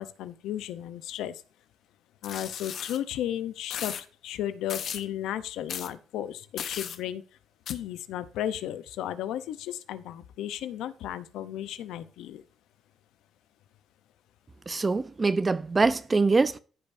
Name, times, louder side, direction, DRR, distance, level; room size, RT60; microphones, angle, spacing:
voice 1, 0.0-1.4 2.2-7.2 7.7-12.4, left 11 dB, 90° left, 0.7 m, -34 dB
sound 1, 2.2-3.0 3.7-4.0 4.7-5.0 5.7-5.9 6.6-7.0 7.7-7.8, left 8 dB, 65° left, 1.0 m, -35 dB
voice 2, 14.7-16.6, right 3 dB, 25° right, 0.7 m, -24 dB
15.0 x 5.4 x 2.6 m
cardioid pair, 90°, 0 cm